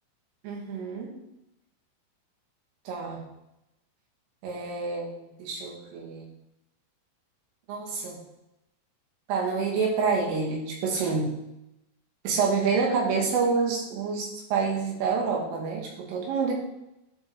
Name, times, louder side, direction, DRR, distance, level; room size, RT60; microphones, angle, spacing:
voice 1, 0.4-1.1 2.9-3.2 4.4-6.3 7.7-8.2 9.3-11.3 12.2-16.5, right 5 dB, 85° right, -2 dB, 4.7 m, -27 dB
10.5 x 5.0 x 4.4 m, 0.87 s
omnidirectional pair, 5.6 m